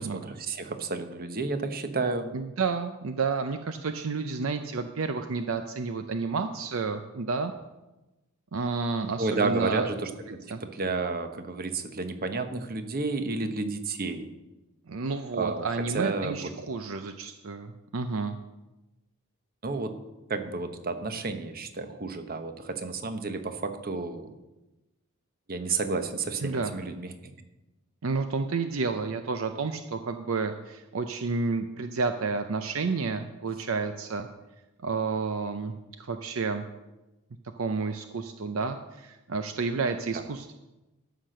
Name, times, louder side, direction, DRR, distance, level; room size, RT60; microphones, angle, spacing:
voice 1, 0.0-2.3 9.2-14.3 15.3-15.7 15.9-16.5 19.6-20.0 20.3-24.3 25.5-27.3 40.1-40.2, right 3 dB, 45° right, 8 dB, 1.0 m, -31 dB
voice 2, 2.3-7.5 8.5-9.9 10.5-10.6 14.9-18.3 26.4-26.7 28.0-34.3 34.8-35.7 36.0-36.6 37.6-40.5, right 4 dB, 70° right, 8 dB, 0.6 m, -30 dB
13.0 x 5.9 x 6.5 m, 1.0 s
head